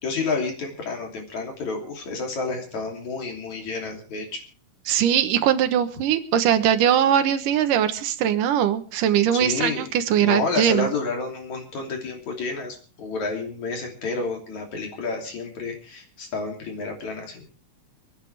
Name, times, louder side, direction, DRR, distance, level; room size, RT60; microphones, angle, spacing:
voice 1, 0.0-4.4 9.3-9.9 10.2-17.4, left 4 dB, 60° left, 2 dB, 4.3 m, -30 dB
voice 2, 4.9-10.9, right 10 dB, 75° right, 8 dB, 2.8 m, -21 dB
29.5 x 9.9 x 3.4 m, 0.36 s
omnidirectional pair, 3.8 m